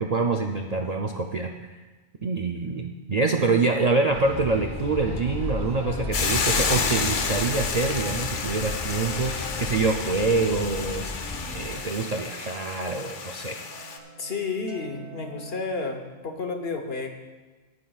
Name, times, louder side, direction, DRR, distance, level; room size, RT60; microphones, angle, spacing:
voice 1, 0.0-1.5 2.2-13.6, right 3 dB, 50° right, 2 dB, 0.5 m, -26 dB
sound 1, 4.1-11.8, left 3 dB, 20° left, 1.2 m, -34 dB
sound 2, 6.0-15.6, equal, 70° right, 1.2 m, -45 dB
Hiss / Boiling, 6.1-14.0, left 5 dB, 80° left, 1.2 m, -30 dB
voice 2, 14.2-17.1, left 4 dB, 55° left, 5 dB, 1.3 m, -31 dB
17.5 x 9.5 x 2.4 m, 1.2 s
omnidirectional pair, 1.2 m